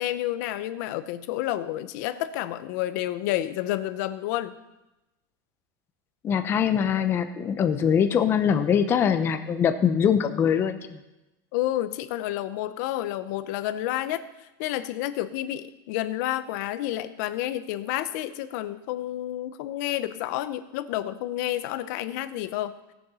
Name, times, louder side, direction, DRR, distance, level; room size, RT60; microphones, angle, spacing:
voice 1, 0.0-4.6 11.5-14.2 14.6-22.7, left 14 dB, 55° left, 12 dB, 0.8 m, -30 dB
voice 2, 6.2-11.0, left 8 dB, 20° left, 8 dB, 0.7 m, -23 dB
17.5 x 6.9 x 5.7 m, 0.99 s
supercardioid pair, 175°, 12 cm